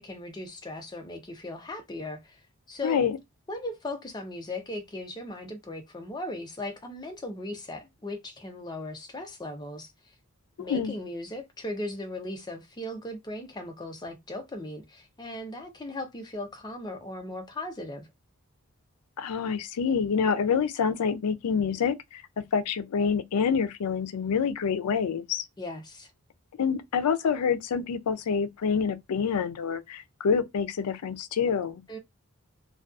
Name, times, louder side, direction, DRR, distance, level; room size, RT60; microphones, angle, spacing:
voice 1, 0.0-2.4 2.7-3.0 3.5-9.9 10.6-18.1 25.6-26.1 31.9-32.0, left 1 dB, 20° left, 0.4 m, -38 dB
voice 2, 2.8-3.2 10.6-10.9 19.2-22.2 22.5-25.5 26.6-31.8, left 6 dB, 85° left, 0.4 m, -27 dB
2.4 x 2.3 x 2.4 m
head